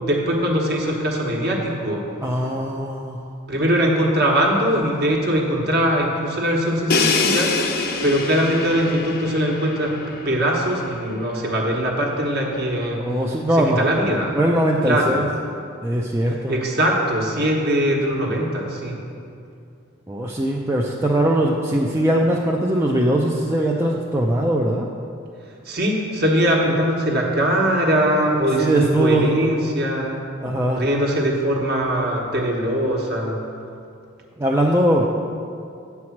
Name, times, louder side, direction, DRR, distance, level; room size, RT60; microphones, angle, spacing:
voice 1, 0.0-2.0 3.5-7.5 8.0-9.9 10.2-13.0 13.5-14.3 14.8-15.2 16.3-18.9 25.6-30.2 30.7-33.4, equal, 50° right, -1 dB, 1.2 m, -21 dB
voice 2, 2.2-3.2 13.0-13.8 14.3-15.2 15.8-16.5 20.1-24.9 28.6-29.3 30.4-30.9 34.4-35.1, right 1 dB, 10° right, -1 dB, 0.4 m, -20 dB
Crash cymbal, 6.9-10.7, left 4 dB, 45° left, 0.6 m, -25 dB
8.5 x 4.7 x 7.2 m, 2.4 s
head